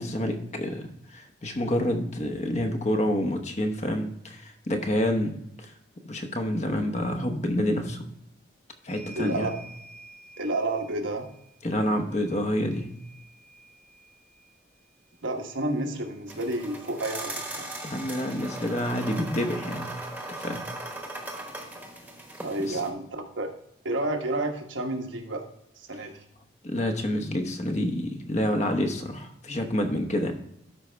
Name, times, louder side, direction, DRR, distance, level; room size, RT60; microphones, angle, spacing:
voice 1, 0.0-5.7 6.0-8.0 8.8-9.5 11.6-12.9 17.8-19.9 20.3-20.7 22.6-22.8 26.6-30.3, left 1 dB, 35° left, 5 dB, 0.9 m, -28 dB
sound 1, 8.9-17.0 18.3-18.4 18.6-19.7, right 2 dB, 60° left, 2.5 m, -52 dB
voice 2, 9.2-9.5 10.4-11.2 15.2-17.7 22.4-23.5 23.8-25.4 25.8-26.2, right 2 dB, 80° right, 3 dB, 1.2 m, -30 dB
sound 2, 16.3-22.9, right 1 dB, 10° right, 1.1 m, -38 dB
12.5 x 4.9 x 3.3 m, 0.77 s
head